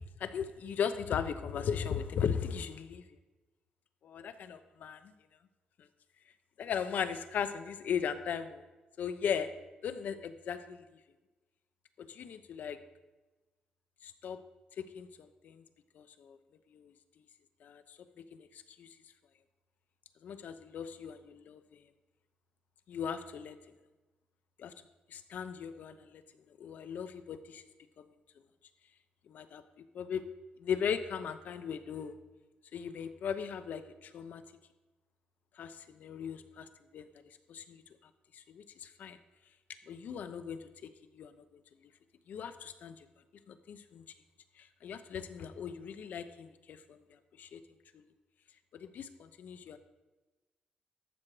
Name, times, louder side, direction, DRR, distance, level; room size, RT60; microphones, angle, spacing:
voice 1, 0.2-3.0 4.0-5.1 6.6-8.6 9.0-9.5 9.8-10.8 12.0-12.8 14.0-14.4 14.8-15.6 15.9-16.4 16.7-16.9 17.6-18.0 18.3-18.9 20.2-21.6 22.9-23.6 24.6-24.7 25.1-26.2 26.6-27.6 28.0-28.1 29.3-29.6 29.9-30.2 30.6-32.1 32.7-34.4 35.6-36.7 36.9-37.1 37.5-37.8 38.3-39.2 39.9-40.6 41.2-41.3 42.3-42.9 43.5-44.0 44.6-47.0 47.4-47.6 48.8-49.8, left 7 dB, 70° left, 10 dB, 0.8 m, -38 dB
12.0 x 7.4 x 4.9 m, 1.1 s
wide cardioid pair, 155°, 3 cm